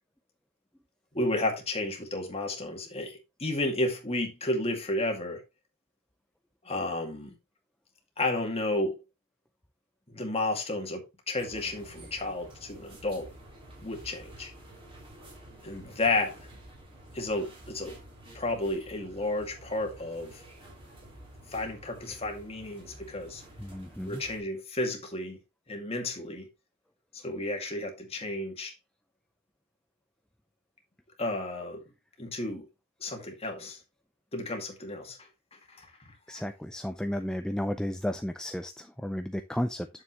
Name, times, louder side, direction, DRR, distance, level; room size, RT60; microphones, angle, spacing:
voice 1, 1.1-5.4 6.6-7.3 8.2-9.0 10.1-13.3 13.8-14.5 15.6-16.4 17.1-17.9 18.3-20.4 21.5-23.4 24.1-25.4 25.7-26.5 27.1-28.7 31.2-31.8 32.2-32.6 33.0-33.8 34.3-35.2 35.7-35.9, left 2 dB, 25° left, 2.1 m, -32 dB
sound 1, 11.4-24.4, right 1 dB, 25° right, 3.3 m, -50 dB
voice 2, 23.6-24.2 36.3-39.9, equal, 5° left, 0.3 m, -33 dB
8.7 x 7.1 x 3.0 m
head